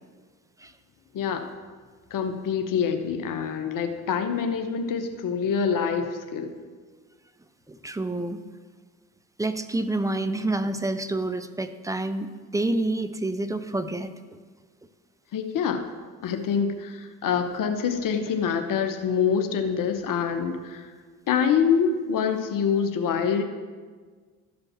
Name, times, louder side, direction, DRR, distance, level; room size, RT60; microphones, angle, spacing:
voice 1, 1.1-1.5 2.1-6.5 15.3-15.9 16.2-20.9 21.3-23.4, left 6 dB, 45° left, 7 dB, 1.0 m, -25 dB
voice 2, 7.7-8.4 9.4-14.4, right 2 dB, 10° right, 9 dB, 0.5 m, -28 dB
12.5 x 5.2 x 6.0 m, 1.5 s
figure-of-eight pair, 50°, 47 cm